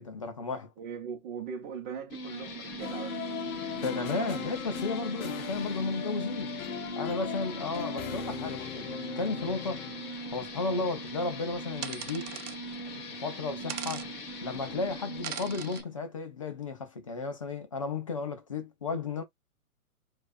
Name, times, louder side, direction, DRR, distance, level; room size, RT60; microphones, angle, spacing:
voice 1, 0.0-0.7 3.8-6.6 7.0-9.9 10.3-12.3 12.9-14.1 14.4-19.2, left 4 dB, 25° left, 0.4 m, -34 dB
voice 2, 0.8-3.4 3.9-4.5, right 7 dB, 30° right, 0.9 m, -40 dB
sound 1, 2.1-15.8, right 1 dB, 40° left, 1.1 m, -40 dB
sound 2, 2.8-10.2, left 10 dB, 65° left, 0.7 m, -39 dB
Dropping ring on table, 11.8-12.6 13.7-14.1 15.2-15.8, right 9 dB, 80° right, 0.7 m, -39 dB
4.5 x 2.6 x 2.4 m
hypercardioid pair, 135°, 44 cm